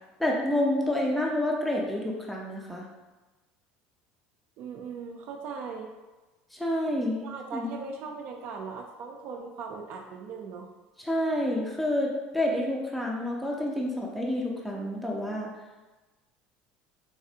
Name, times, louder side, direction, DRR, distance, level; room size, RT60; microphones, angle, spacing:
voice 1, 0.2-2.9 6.5-7.7 11.0-15.5, left 1 dB, ahead, -2 dB, 0.5 m, -29 dB
voice 2, 4.6-5.9 7.2-10.7, right 5 dB, 60° right, 1 dB, 0.4 m, -39 dB
4.1 x 2.5 x 2.7 m, 1.2 s
supercardioid pair, 120°, 4 cm